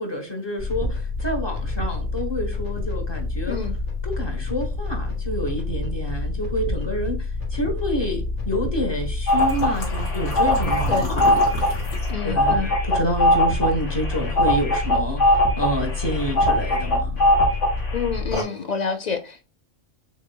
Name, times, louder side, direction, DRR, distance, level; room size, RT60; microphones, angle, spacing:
voice 1, 0.0-3.6 4.0-11.7 12.2-17.2, equal, 25° left, 1.0 m, -28 dB
sound 1, 0.6-18.4, left 3 dB, 70° left, 2.7 m, -28 dB
sound 2, 9.3-17.9 18.3-18.4, left 1 dB, 90° left, 1.9 m, -21 dB
voice 2, 12.1-12.7 17.9-19.5, left 5 dB, 45° left, 0.7 m, -28 dB
6.5 x 3.4 x 2.2 m
omnidirectional pair, 1.2 m